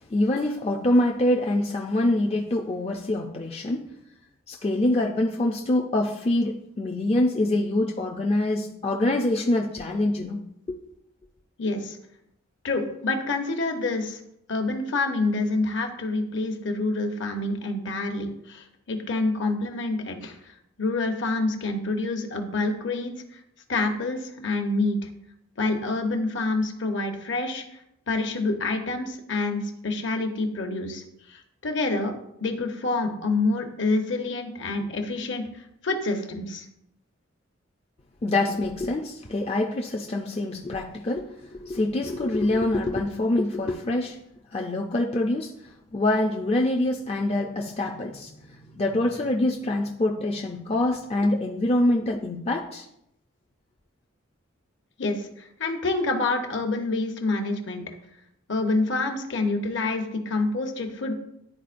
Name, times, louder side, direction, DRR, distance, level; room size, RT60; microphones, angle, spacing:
voice 1, 0.1-3.9 4.5-10.4 10.7-10.8 38.2-44.2 44.5-52.9, left 1 dB, 30° left, 0 dB, 0.4 m, -25 dB
voice 2, 11.6-12.0 12.6-14.2 14.5-23.4 23.7-25.1 25.6-27.6 28.1-31.0 31.3-32.1 32.4-35.5 35.8-36.6 55.0-57.9 58.5-61.1, left 2 dB, 55° left, 5 dB, 0.9 m, -27 dB
11.0 x 4.3 x 2.5 m, 0.78 s
head